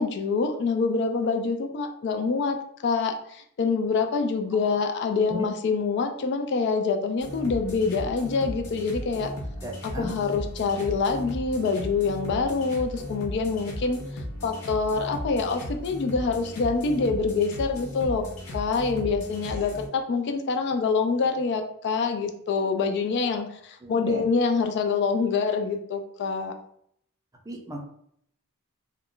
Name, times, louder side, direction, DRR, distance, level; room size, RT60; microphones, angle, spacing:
voice 1, 0.0-2.6 2.8-9.3 9.8-18.2 18.5-26.5, left 4 dB, 50° left, 5 dB, 0.3 m, -26 dB
sound 1, 7.2-19.9, left 1 dB, 80° left, 0.7 m, -36 dB
voice 2, 9.6-10.1 23.8-24.2 27.5-27.8, equal, 15° right, 0 dB, 0.4 m, -34 dB
2.3 x 2.1 x 3.6 m, 0.70 s
head